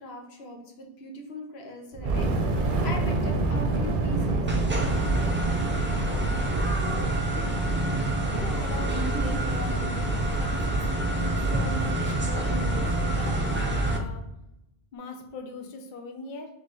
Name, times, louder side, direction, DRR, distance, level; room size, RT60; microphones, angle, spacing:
voice 1, 0.0-4.5 7.0-7.5 7.7-7.8, left 1 dB, 90° left, 2 dB, 1.1 m, -40 dB
Fire, 1.9-7.2, right 2 dB, 60° right, 0.7 m, -27 dB
sound 1, 4.5-14.0, right 1 dB, 20° right, 0.4 m, -27 dB
voice 2, 8.4-10.1 10.3-10.6 11.1-14.2 14.9-16.5, left 3 dB, 55° left, 4 dB, 0.7 m, -40 dB
3.3 x 3.2 x 3.9 m, 0.88 s
omnidirectional pair, 1.0 m